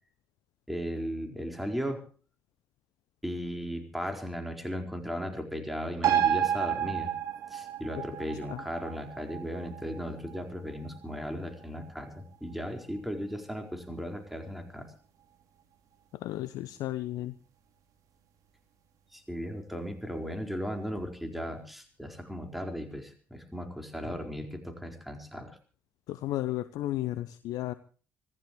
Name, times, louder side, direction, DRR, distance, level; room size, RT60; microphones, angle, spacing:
voice 1, 0.7-2.0 3.2-7.1 7.5-14.9 19.1-25.6, equal, ahead, 5 dB, 4.5 m, -36 dB
sound 1, 6.0-13.0 13.3-13.4, right 10 dB, 60° right, 3.3 m, -32 dB
voice 2, 16.1-17.3 26.1-27.7, left 14 dB, 65° left, 15 dB, 0.7 m, -33 dB
25.0 x 16.0 x 3.1 m, 0.39 s
figure-of-eight pair, 45°, 7 cm